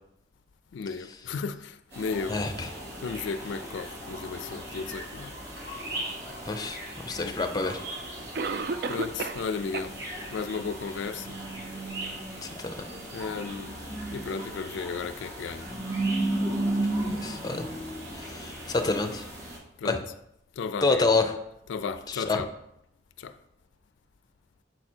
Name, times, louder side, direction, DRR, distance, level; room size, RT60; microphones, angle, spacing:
voice 1, 0.7-2.4 3.0-5.3 7.2-7.4 8.9-10.0 10.3-11.4 13.1-13.8 14.1-15.7 19.8-20.0 20.6-21.1 21.7-22.5 23.2-23.4, left 5 dB, 85° left, 0.4 m, -34 dB
sound 1, 1.9-19.6, right 1 dB, 80° right, 2.7 m, -35 dB
voice 2, 2.3-2.7 6.4-7.8 12.4-12.5 12.8-12.9 17.2-17.7 18.1-19.3 19.8-20.0 20.8-21.3 22.1-22.4, left 3 dB, 20° left, 0.5 m, -27 dB
Cough, 7.2-7.3 8.3-9.5 9.7-9.9 10.4-10.5 11.1-11.2, right 4 dB, 55° right, 0.4 m, -31 dB
6.6 x 4.9 x 4.3 m
head